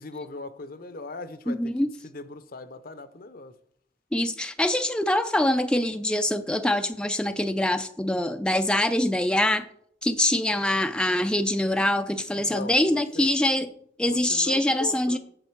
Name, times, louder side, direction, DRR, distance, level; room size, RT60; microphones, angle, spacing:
voice 1, 0.0-1.7 2.0-3.5 12.3-13.3 14.0-15.2, left 3 dB, 50° left, 0.7 m, -39 dB
voice 2, 1.5-1.9 4.1-9.7 10.0-13.7 14.0-15.2, left 1 dB, 5° left, 0.4 m, -24 dB
8.7 x 7.2 x 4.6 m
head